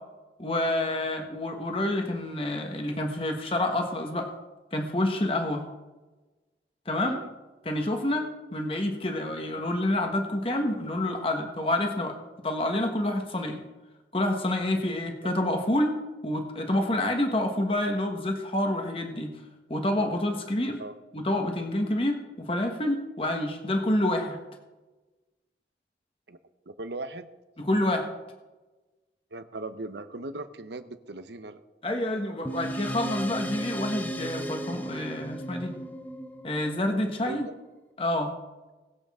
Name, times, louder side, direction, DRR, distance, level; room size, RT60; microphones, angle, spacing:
voice 1, 0.4-4.3 4.7-5.6 6.9-7.2 7.6-8.3 8.5-12.2 12.4-13.6 14.1-15.9 16.2-19.3 19.7-20.8 21.1-24.4 27.6-28.1 31.8-35.7 36.4-37.5 38.0-38.3, left 1 dB, 30° left, 3 dB, 1.3 m, -28 dB
voice 2, 26.7-27.3 29.3-31.6 37.3-37.5, right 2 dB, 80° right, 11 dB, 0.9 m, -38 dB
sound 1, 32.5-37.3, equal, 10° left, 0.7 m, -35 dB
20.0 x 8.0 x 3.7 m, 1.2 s
head